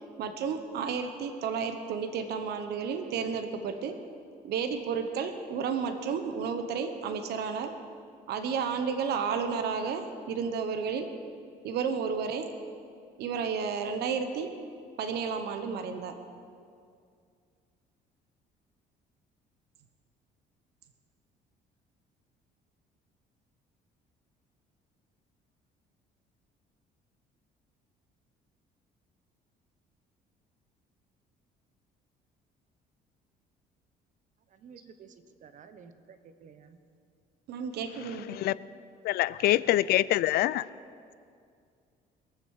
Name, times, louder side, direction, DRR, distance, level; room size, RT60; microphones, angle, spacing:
voice 1, 0.2-4.0 4.4-7.7 8.3-11.1 11.6-12.5 13.2-14.5 15.0-16.1 37.5-38.4, right 6 dB, 70° right, 1.1 m, -32 dB
voice 2, 34.5-35.1 35.4-36.8, right 6 dB, 50° right, 1.1 m, -52 dB
voice 3, 39.0-40.7, left 15 dB, 70° left, 0.4 m, -25 dB
22.5 x 7.5 x 6.6 m
cardioid pair, 110°, 17 cm